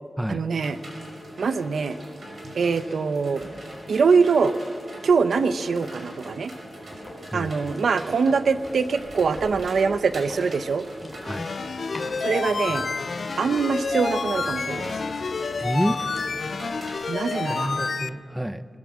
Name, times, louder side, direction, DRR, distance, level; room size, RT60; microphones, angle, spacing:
voice 1, 0.3-0.8 1.4-2.0 2.5-3.4 3.9-4.5 5.0-6.5 7.3-10.8 12.2-12.9 13.4-14.9 17.1-17.7, right 5 dB, 85° right, 11 dB, 0.8 m, -23 dB
sound 1, 0.6-17.9, equal, 45° right, 5.6 m, -40 dB
sound 2, 5.3-5.6 6.1-7.3 7.6-13.8 14.2-16.4, left 1 dB, 10° left, 4.2 m, -47 dB
voice 2, 7.3-7.8 11.2-11.5 15.6-16.0 17.4-18.7, right 1 dB, 5° right, 12 dB, 0.6 m, -29 dB
sound 3, 11.2-18.1, left 4 dB, 60° left, 0.5 m, -29 dB
21.5 x 19.5 x 7.4 m, 2.3 s
wide cardioid pair, 150°, 0 cm